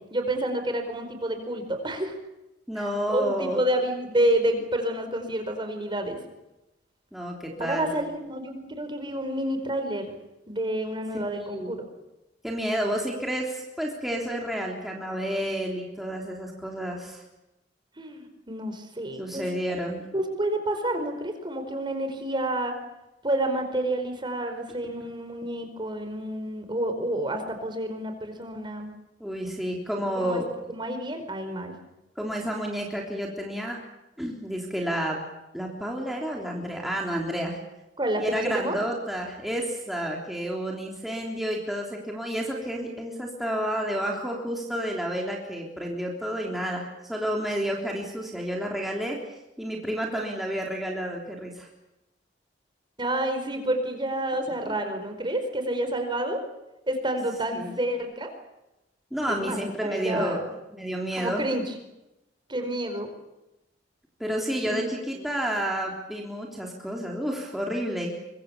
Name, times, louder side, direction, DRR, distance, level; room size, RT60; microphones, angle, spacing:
voice 1, 0.1-2.1 2.8-2.9 3.1-6.2 7.7-10.1 10.5-11.9 18.0-19.4 20.1-22.7 23.2-28.9 30.1-30.4 30.7-31.7 38.0-38.8 53.0-56.4 56.9-58.3 59.3-60.4 61.1-61.7 62.5-63.1 64.7-64.9, right 1 dB, 25° right, 6 dB, 4.8 m, -29 dB
voice 2, 2.7-3.6 7.1-7.9 11.4-11.7 12.4-17.2 19.2-20.0 29.2-30.5 32.2-33.8 34.2-35.2 35.5-37.6 38.2-49.2 49.6-51.7 54.7-54.8 57.5-57.7 59.1-60.4 60.7-61.5 64.2-68.2, equal, ahead, -1 dB, 3.5 m, -30 dB
24.5 x 23.5 x 7.3 m, 0.94 s
head